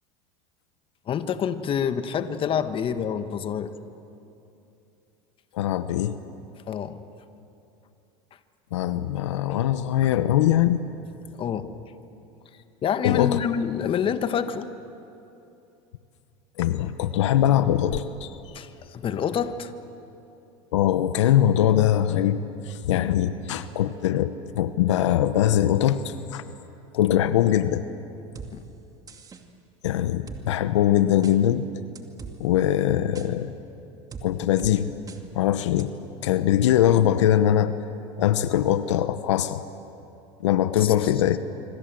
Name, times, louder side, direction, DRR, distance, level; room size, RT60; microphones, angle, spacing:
voice 1, 1.1-3.7 6.7-7.0 11.4-11.7 12.8-14.7 18.5-19.7 23.8-23.9 28.5-28.6 40.8-40.9, left 8 dB, 35° left, 10 dB, 1.5 m, -27 dB
voice 2, 5.5-6.2 8.7-10.8 13.0-13.4 16.6-18.3 20.7-26.4 26.9-27.9 29.8-31.7 32.4-33.5 34.2-34.9 35.3-35.9 36.2-37.7 38.2-39.6 40.4-41.4, left 11 dB, 85° left, 12 dB, 1.0 m, -22 dB
sound 1, 28.4-28.5 29.1-29.4 30.3-30.4 31.2-31.4 32.0-32.4 33.2-33.3 34.1-34.3 34.6-34.7 35.1-35.2 35.8-35.9, right 5 dB, 25° right, 2.4 m, -39 dB
26.0 x 25.0 x 7.7 m, 2.8 s
supercardioid pair, 100°, 15 cm